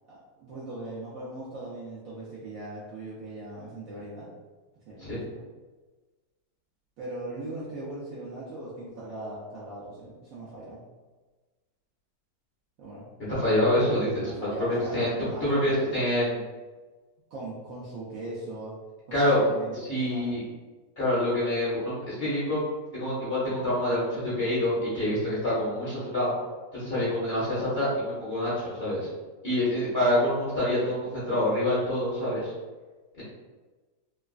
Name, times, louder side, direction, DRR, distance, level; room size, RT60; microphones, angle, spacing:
voice 1, 0.1-4.3 4.9-5.5 7.0-10.8 12.8-13.1 14.2-15.8 17.3-18.7 19.1-20.3, right 2 dB, 65° right, -8 dB, 0.9 m, -39 dB
voice 2, 13.3-15.1 15.4-16.4 19.1-20.4 21.0-22.6 22.9-26.3 26.7-29.1 29.4-32.5, left 1 dB, 45° left, -9 dB, 0.9 m, -26 dB
3.1 x 2.4 x 2.3 m, 1.3 s
omnidirectional pair, 1.9 m